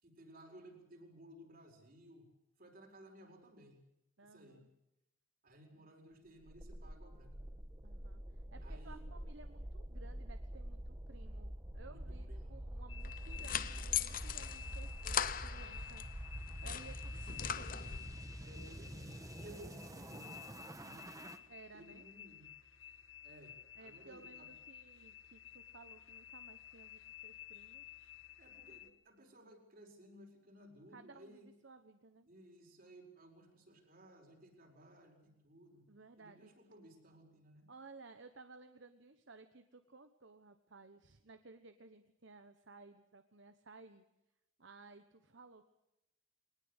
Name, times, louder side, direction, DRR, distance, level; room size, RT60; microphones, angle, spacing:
voice 1, 0.0-2.3 2.6-3.8 4.2-4.6 5.4-7.3 8.6-9.1 11.8-12.5 18.4-20.4 20.8-21.1 21.7-22.5 23.2-24.5 28.4-31.5 32.3-35.8 36.2-37.7, right 1 dB, 45° right, 3 dB, 4.8 m, -58 dB
voice 2, 4.2-4.7 7.8-16.1 16.6-17.9 21.5-22.1 23.8-28.0 30.9-32.3 35.9-36.5 37.7-44.0 44.6-45.6, right 3 dB, 60° right, 9 dB, 1.2 m, -58 dB
sound 1, 6.4-21.4, right 1 dB, 15° right, 1.3 m, -46 dB
sound 2, 12.9-28.9, left 11 dB, 75° left, 1.8 m, -54 dB
sound 3, 13.0-16.1 16.5-18.2, left 9 dB, 40° left, 0.8 m, -40 dB
22.0 x 19.5 x 8.1 m, 0.86 s
head